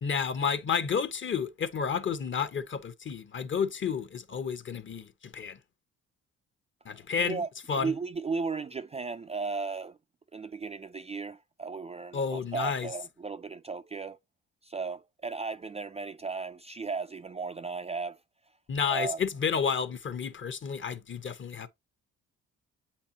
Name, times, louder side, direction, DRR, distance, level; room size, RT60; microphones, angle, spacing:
voice 1, 0.0-5.6 6.8-7.4 7.7-8.0 12.1-12.9 18.7-21.7, left 6 dB, 40° left, 0.9 m, -31 dB
voice 2, 6.9-10.0 10.3-14.2 14.6-18.2 18.9-19.2, right 4 dB, 20° right, 0.3 m, -35 dB
8.1 x 4.2 x 2.8 m
cardioid pair, 90°, 30 cm